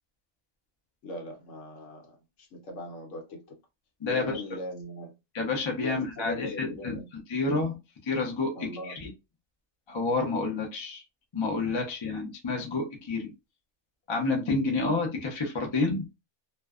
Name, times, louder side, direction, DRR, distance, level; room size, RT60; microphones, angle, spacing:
voice 1, 1.0-3.6 4.1-5.1 5.8-7.1 8.5-9.0, left 1 dB, 65° left, 1.0 m, -39 dB
voice 2, 4.0-4.3 5.3-7.0 7.3-7.8 8.0-8.5 8.9-9.1 9.9-11.0 11.3-13.3 14.1-16.0, left 3 dB, 45° left, 0.3 m, -29 dB
2.5 x 2.2 x 2.3 m
omnidirectional pair, 1.5 m